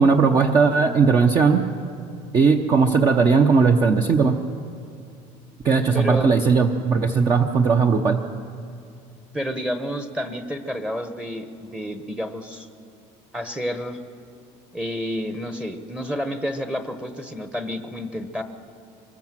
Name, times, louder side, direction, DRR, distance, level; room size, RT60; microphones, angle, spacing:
voice 1, 0.0-1.6 2.3-4.4 5.6-8.2, right 5 dB, 30° right, 4 dB, 0.9 m, -18 dB
voice 2, 5.9-6.3 9.3-12.7 13.3-14.0 14.7-18.4, equal, 5° right, 6 dB, 1.0 m, -30 dB
24.5 x 20.5 x 7.6 m, 2.6 s
cardioid pair, 155°, 14 cm